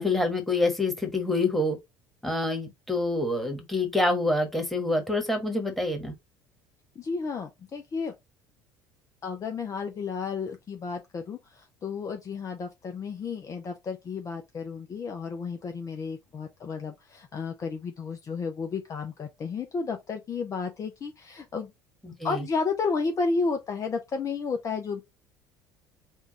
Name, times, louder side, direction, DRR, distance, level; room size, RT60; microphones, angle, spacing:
voice 1, 0.0-1.8 2.2-6.1 22.0-22.4, left 2 dB, ahead, 1.4 m, -27 dB
voice 2, 7.0-8.1 9.2-21.7 22.2-25.0, left 4 dB, 30° left, 0.6 m, -32 dB
3.6 x 2.4 x 3.9 m
figure-of-eight pair, 60°, 10 cm